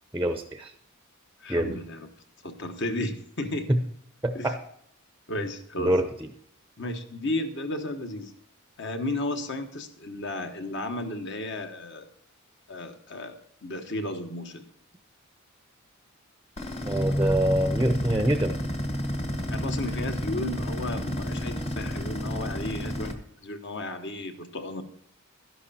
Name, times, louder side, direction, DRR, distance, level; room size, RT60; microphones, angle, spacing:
voice 1, 0.1-0.7 1.5-1.8 3.7-3.8 4.2-4.6 5.8-6.0 16.8-18.6, right 1 dB, 10° right, 8 dB, 0.6 m, -25 dB
voice 2, 1.4-2.1 2.4-3.7 4.3-4.5 5.3-6.0 6.8-8.3 8.8-12.1 12.7-14.7 19.5-24.8, left 1 dB, 55° left, 6 dB, 1.3 m, -33 dB
sound 1, 16.6-23.1, equal, 30° left, 1.1 m, -30 dB
12.5 x 11.0 x 4.3 m, 0.69 s
head